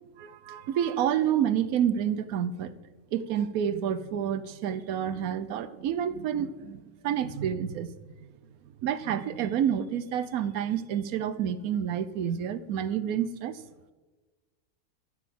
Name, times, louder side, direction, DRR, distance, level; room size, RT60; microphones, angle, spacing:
voice 1, 0.2-2.7 3.1-7.9 8.8-13.6, right 9 dB, 70° right, 14 dB, 1.1 m, -29 dB
12.0 x 6.1 x 7.5 m, 1.3 s
omnidirectional pair, 1.6 m